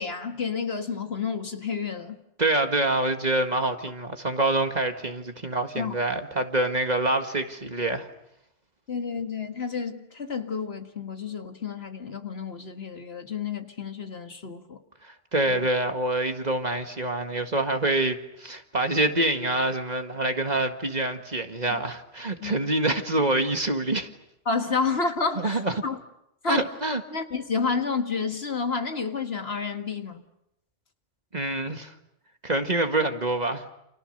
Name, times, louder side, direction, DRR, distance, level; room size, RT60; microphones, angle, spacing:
voice 1, 0.0-2.2 5.8-5.9 8.9-14.8 15.5-15.6 22.4-22.5 24.5-26.0 26.4-26.6 27.1-30.2, left 5 dB, 55° left, 2.0 m, -30 dB
voice 2, 2.4-8.1 15.0-24.1 25.4-25.7 26.5-27.0 31.3-31.9 32.4-33.6, right 2 dB, 35° right, 1.9 m, -26 dB
30.0 x 28.5 x 6.7 m
omnidirectional pair, 1.2 m